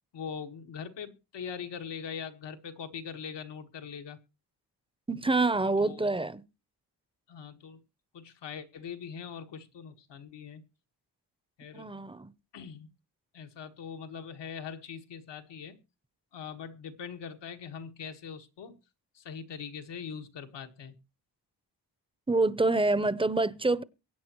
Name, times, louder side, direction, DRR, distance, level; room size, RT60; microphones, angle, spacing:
voice 1, 0.1-4.2 5.8-6.1 7.3-7.8 8.1-10.6 11.6-11.9 12.5-12.9 13.3-15.8 16.3-18.8 19.1-20.9, left 7 dB, 90° left, 1.6 m, -42 dB
voice 2, 5.1-6.4 11.7-12.3 22.3-23.8, right 2 dB, 15° right, 0.6 m, -26 dB
23.0 x 9.1 x 3.0 m
cardioid pair, 100°, 41 cm